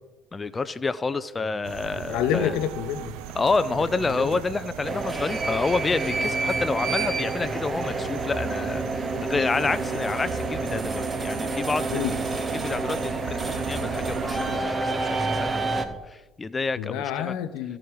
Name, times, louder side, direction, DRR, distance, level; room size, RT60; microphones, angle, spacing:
voice 1, 0.3-2.6 3.3-17.4, left 3 dB, 25° left, 0.4 m, -29 dB
sound 1, 1.6-14.6, right 10 dB, 85° right, 0.5 m, -37 dB
voice 2, 2.1-3.1 11.9-12.1 16.8-17.8, left 9 dB, 80° left, 0.7 m, -27 dB
sound 2, 4.8-15.8, right 3 dB, 25° right, 0.9 m, -29 dB
sound 3, 10.5-16.0, right 2 dB, 5° right, 1.8 m, -42 dB
14.0 x 4.8 x 4.6 m
supercardioid pair, 90°, 0 cm